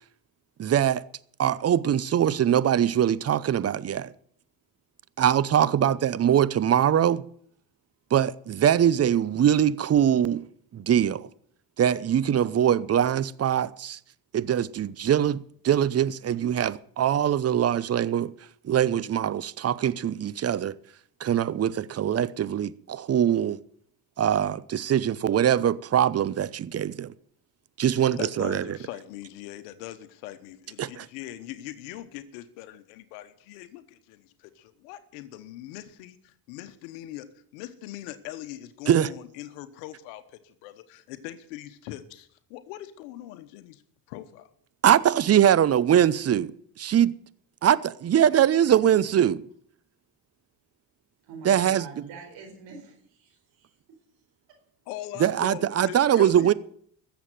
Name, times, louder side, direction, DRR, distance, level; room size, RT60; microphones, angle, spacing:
voice 1, 0.6-1.0 1.4-4.1 5.2-7.2 8.1-10.4 10.7-11.3 11.8-14.0 14.3-18.3 18.6-20.7 21.2-23.6 24.2-27.1 27.8-28.6 30.8-31.0 38.9-39.1 44.8-46.5 46.8-47.1 47.6-49.4 51.4-51.8 55.2-56.5, right 10 dB, 35° right, 0.7 m, -22 dB
voice 2, 28.2-43.8 44.1-44.5 54.9-56.5, left 13 dB, 90° left, 1.2 m, -41 dB
voice 3, 51.2-53.7, right 4 dB, 70° right, 4.7 m, -45 dB
14.0 x 7.4 x 9.1 m
supercardioid pair, 85°, 46 cm